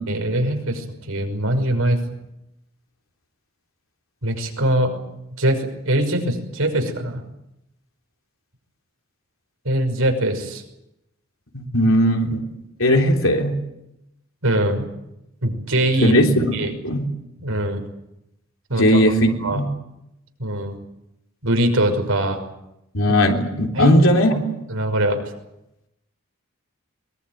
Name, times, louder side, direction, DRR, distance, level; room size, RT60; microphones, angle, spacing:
voice 1, 0.1-2.0 4.2-4.9 5.4-7.2 9.6-10.6 14.4-14.9 15.4-16.2 16.5-16.7 17.4-17.8 18.7-19.0 19.4-19.6 20.4-20.7 21.4-22.4 23.7-23.9 24.3-24.4 24.7-25.2, right 1 dB, 75° right, 5 dB, 5.8 m, -22 dB
voice 2, 11.5-12.5 12.8-13.6 16.0-16.6 16.8-17.1 18.7-19.7 22.9-24.4, equal, 70° left, 2 dB, 3.5 m, -18 dB
22.5 x 20.5 x 9.3 m, 0.87 s
head